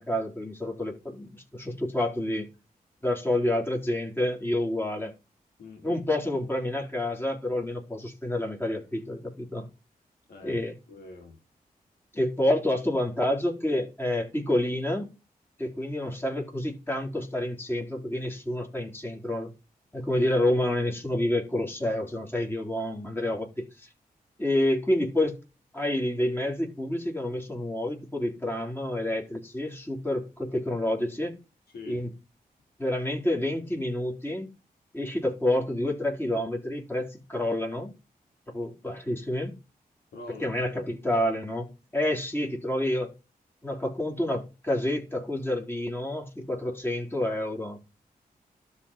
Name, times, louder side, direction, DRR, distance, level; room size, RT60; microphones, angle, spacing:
voice 1, 0.0-2.5 3.0-5.1 5.8-9.7 10.4-10.7 12.1-15.1 15.6-19.5 19.9-23.9 24.4-25.4 25.7-31.3 31.9-32.1 32.8-34.5 34.9-37.9 38.5-39.5 40.4-43.1 43.6-47.8, left 1 dB, 15° left, 3.8 m, -28 dB
voice 2, 5.6-6.0 10.3-10.6 10.9-11.4 31.7-32.0 40.1-40.5, left 3 dB, 90° left, 2.3 m, -44 dB
12.5 x 4.3 x 3.7 m
cardioid pair, 50°, 16 cm